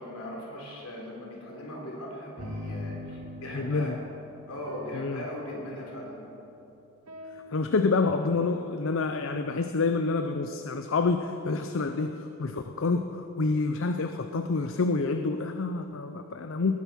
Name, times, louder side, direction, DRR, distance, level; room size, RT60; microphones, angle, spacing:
voice 1, 0.0-3.9 4.5-6.2, left 1 dB, 75° left, -2 dB, 3.7 m, -39 dB
sound 1, 2.4-6.5 7.1-7.7, left 2 dB, 85° right, 1.6 m, -42 dB
voice 2, 3.5-3.9 4.9-5.2 7.5-16.8, left 3 dB, 60° left, 7 dB, 0.5 m, -28 dB
19.0 x 9.3 x 6.0 m, 3.0 s
head